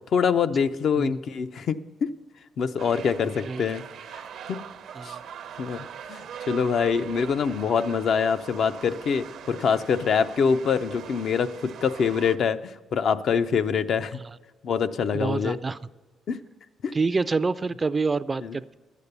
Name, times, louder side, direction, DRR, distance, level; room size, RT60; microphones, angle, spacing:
voice 1, 0.1-1.8 2.6-3.8 4.1-4.2 4.5-4.6 5.0-5.2 5.6-14.2 14.6-15.6 16.3-16.4 16.8-16.9 18.4-18.6, left 6 dB, 60° left, 9 dB, 0.5 m, -25 dB
sound 1, 2.8-12.4, right 8 dB, 75° right, 0.6 m, -41 dB
voice 2, 15.1-15.8 16.9-18.8, right 4 dB, 30° right, 14 dB, 0.3 m, -27 dB
11.5 x 8.4 x 6.7 m, 1.3 s
cardioid pair, 90°, 0 cm